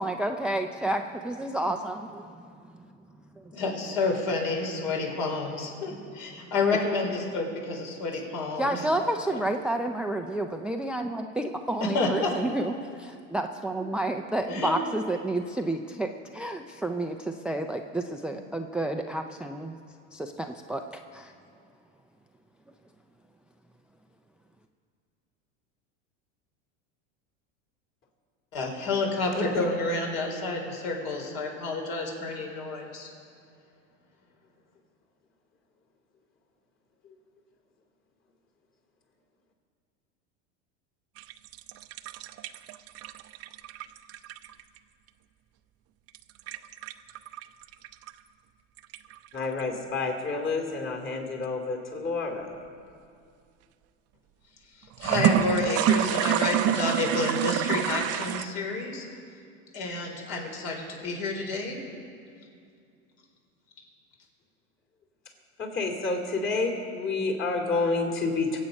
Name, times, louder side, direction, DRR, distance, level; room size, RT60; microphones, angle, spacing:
voice 1, 0.0-2.2 8.6-12.7 13.0-16.1 16.3-17.2 17.4-19.7 20.1-20.8 21.1-21.2, right 1 dB, 5° right, 6 dB, 0.4 m, -30 dB
voice 2, 3.5-8.9 9.3-9.4 11.8-12.3 14.5-14.7 18.3-18.4 28.5-33.1 55.0-59.1 59.7-61.8, left 3 dB, 60° left, 0 dB, 4.2 m, -29 dB
sound 1, 41.2-44.8 46.1-48.1 48.8-49.6 54.9-58.4, right 11 dB, 40° right, 0.6 m, -27 dB
voice 3, 49.3-52.5 65.6-68.6, left 3 dB, 30° left, 2 dB, 3.0 m, -29 dB
23.0 x 8.4 x 5.3 m, 2.3 s
supercardioid pair, 110°, 38 cm